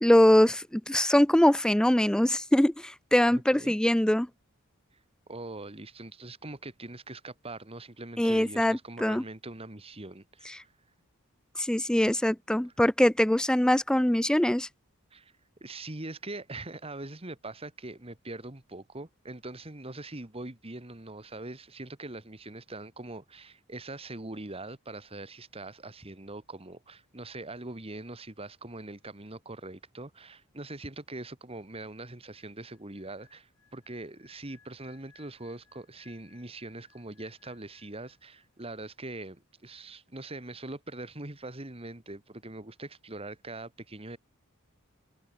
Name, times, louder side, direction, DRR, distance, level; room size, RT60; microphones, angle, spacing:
voice 1, 0.0-4.3 8.2-9.2 11.6-14.7, left 1 dB, 5° left, 0.4 m, -23 dB
voice 2, 3.3-3.7 5.3-10.7 15.1-15.3 15.6-44.2, right 2 dB, 25° right, 1.9 m, -42 dB
sound 1, 32.3-38.6 38.9-39.2, left 7 dB, 90° left, 7.5 m, -65 dB
head